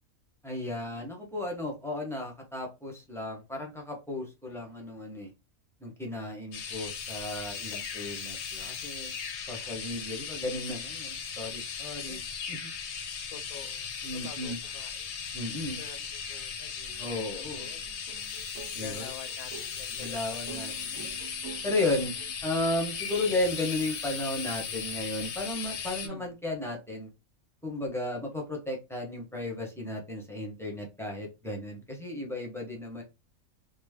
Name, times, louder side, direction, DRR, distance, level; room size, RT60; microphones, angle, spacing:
voice 1, 0.4-5.3 5.8-9.1 9.5-12.2 12.5-12.7 14.0-14.6 15.3-15.8 17.0-17.6 18.7-19.1 20.0-21.2 21.6-22.1 22.4-27.1 27.6-33.0, left 2 dB, ahead, 0.7 m, -34 dB
sound 1, 6.5-26.1, left 6 dB, 60° left, 0.8 m, -37 dB
voice 2, 13.3-15.1 15.8-17.1 17.3-17.9 18.8-20.5 20.9-21.2 23.3-23.5 26.0-26.3, left 7 dB, 80° left, 1.0 m, -48 dB
sound 2, 16.9-22.3, right 7 dB, 70° right, 1.2 m, -48 dB
3.2 x 2.3 x 3.5 m
omnidirectional pair, 1.5 m